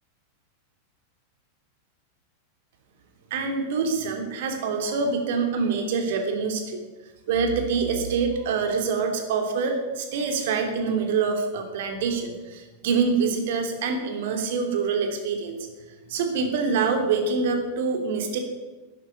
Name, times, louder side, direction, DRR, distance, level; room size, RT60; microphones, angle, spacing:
voice 1, 3.3-6.8 7.3-15.7 16.1-18.4, right 5 dB, 55° right, 5 dB, 3.1 m, -25 dB
12.5 x 11.0 x 9.8 m, 1.2 s
figure-of-eight pair, 90°, 0 cm